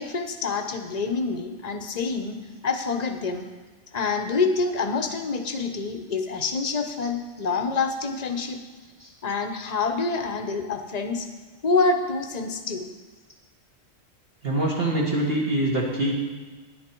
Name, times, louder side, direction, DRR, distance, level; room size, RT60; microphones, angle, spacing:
voice 1, 0.0-2.4 2.6-3.5 3.9-8.6 9.2-11.3 11.6-12.9, left 4 dB, 35° left, 6 dB, 0.8 m, -26 dB
voice 2, 14.4-16.1, right 1 dB, 45° right, -4 dB, 1.9 m, -24 dB
10.0 x 10.0 x 4.5 m, 1.3 s
omnidirectional pair, 1.4 m